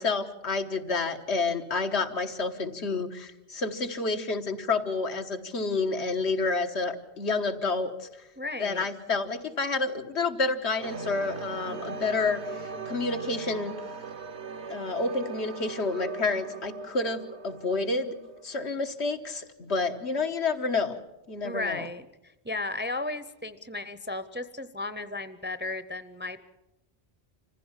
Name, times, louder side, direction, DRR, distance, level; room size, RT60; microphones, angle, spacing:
voice 1, 0.0-8.1 8.6-13.7 14.7-18.2 18.4-21.0 21.3-21.9, left 3 dB, 90° left, 5 dB, 1.6 m, -29 dB
voice 2, 8.4-8.9 21.4-26.4, left 2 dB, 15° right, 12 dB, 0.5 m, -35 dB
sound 1, 10.8-18.8, right 4 dB, 85° right, 1.4 m, -39 dB
25.5 x 15.5 x 7.3 m, 0.99 s
omnidirectional pair, 1.1 m